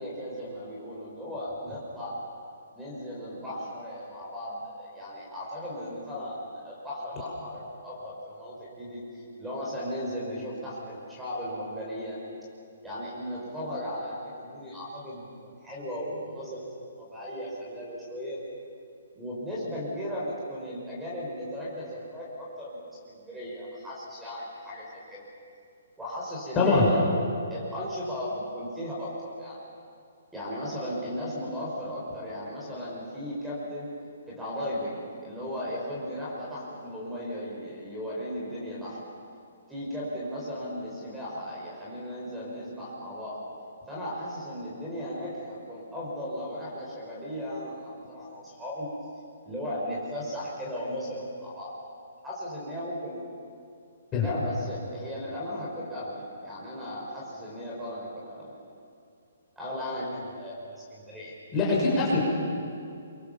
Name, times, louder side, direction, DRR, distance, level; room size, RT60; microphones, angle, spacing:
voice 1, 0.0-2.2 2.7-9.0 9.4-12.2 12.8-16.6 17.0-18.4 19.2-25.2 26.0-27.0 27.5-29.6 30.3-33.9 34.3-39.0 39.7-43.5 43.9-48.9 49.5-51.7 52.2-53.2 54.2-58.5 59.6-61.3, equal, 5° right, -6 dB, 6.0 m, -36 dB
voice 2, 26.5-26.9 54.1-54.3 61.5-62.2, left 3 dB, 20° left, -4 dB, 6.1 m, -22 dB
27.5 x 24.0 x 7.3 m, 2.4 s
hypercardioid pair, 160°, 0 cm